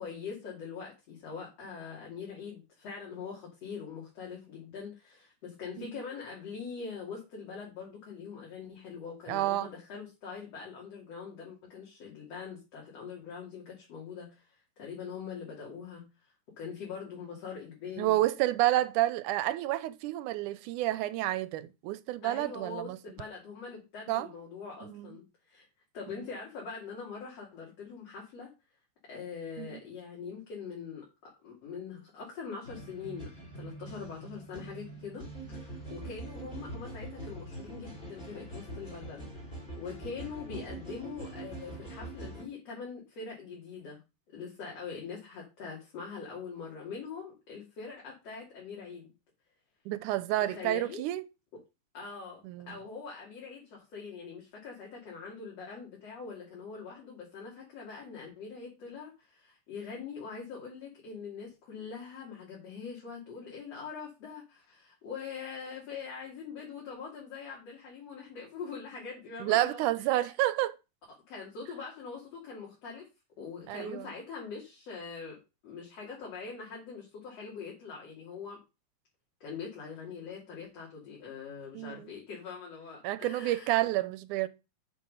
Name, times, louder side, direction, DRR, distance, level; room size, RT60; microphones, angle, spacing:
voice 1, 0.0-16.1 16.6-18.2 22.2-25.7 25.9-28.5 29.1-35.3 35.5-44.0 44.3-49.1 50.4-51.1 51.9-70.3 71.3-73.1 73.4-78.6 79.4-83.8, left 5 dB, 55° left, 3.6 m, -43 dB
voice 2, 9.3-9.7 18.0-23.0 24.1-24.3 24.8-25.1 26.1-26.3 29.6-29.8 49.9-51.2 52.4-52.8 69.4-70.8 73.7-74.1 81.8-82.1 83.0-84.5, right 15 dB, 90° right, 2.1 m, -30 dB
sound 1, 32.6-42.5, right 2 dB, 15° left, 3.4 m, -43 dB
7.4 x 6.5 x 5.3 m
omnidirectional pair, 3.5 m